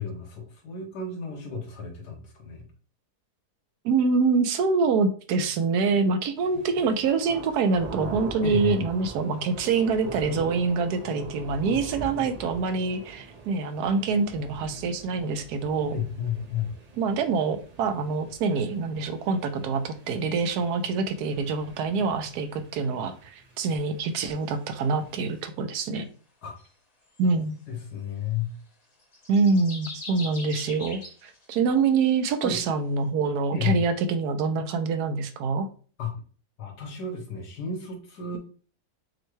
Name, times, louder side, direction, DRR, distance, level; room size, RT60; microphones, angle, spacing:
voice 1, 0.0-2.6 6.8-6.9 8.4-8.8 15.8-16.7 26.4-26.6 27.3-28.5 32.4-32.6 33.5-33.8 36.0-36.1 36.6-38.4, left 6 dB, 80° left, 3 dB, 1.6 m, -32 dB
voice 2, 3.8-15.9 17.0-26.1 27.2-27.6 29.3-35.7, right 4 dB, 80° right, 8 dB, 1.1 m, -25 dB
sound 1, 6.4-25.4, right 3 dB, 40° right, 0.6 m, -43 dB
sound 2, 26.6-26.7 27.2-27.3 29.0-31.9, left 2 dB, 30° left, 0.9 m, -41 dB
6.3 x 2.2 x 3.1 m, 0.40 s
omnidirectional pair, 1.7 m